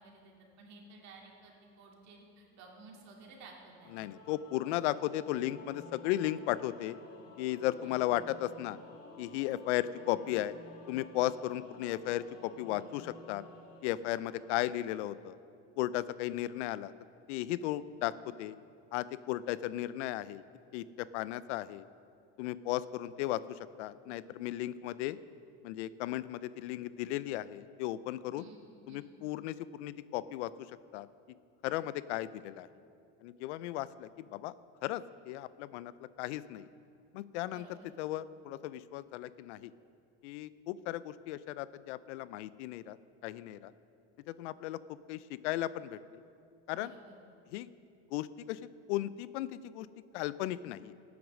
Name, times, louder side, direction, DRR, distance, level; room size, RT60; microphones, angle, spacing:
voice 1, 0.0-4.0 7.8-8.2 28.3-29.1 37.5-37.9 46.7-47.2, right 3 dB, 55° right, -1 dB, 2.7 m, -54 dB
Singing / Musical instrument, 3.7-15.0, left 2 dB, 45° left, 2.1 m, -53 dB
voice 2, 3.9-7.0 7.4-8.8 9.2-10.5 10.9-13.4 13.8-15.4 15.8-16.9 17.3-18.6 18.9-20.4 20.7-21.9 22.4-25.2 25.6-28.4 28.9-30.5 30.9-31.1 31.6-32.7 33.2-34.5 34.8-35.9 36.2-36.7 37.1-37.7 38.0-39.7 40.2-43.0 43.2-43.7 44.3-44.8 45.1-46.0 46.7-46.9 47.5-47.7 48.1-48.6 48.9-49.9 50.1-50.9, left 14 dB, 90° left, 17 dB, 0.5 m, -35 dB
12.0 x 9.4 x 6.3 m, 2.5 s
supercardioid pair, 120°, 34 cm